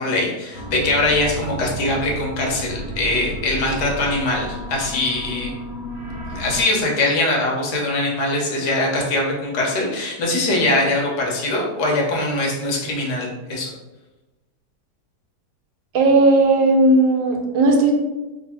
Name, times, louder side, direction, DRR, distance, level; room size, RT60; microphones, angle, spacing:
voice 1, 0.0-5.5 6.3-13.7, left 2 dB, 75° left, -2 dB, 1.4 m, -22 dB
sound 1, 0.5-6.6, equal, 25° right, 0.5 m, -32 dB
voice 2, 15.9-17.9, right 2 dB, 80° right, 2 dB, 1.2 m, -15 dB
3.3 x 2.4 x 4.3 m, 1.1 s
omnidirectional pair, 1.8 m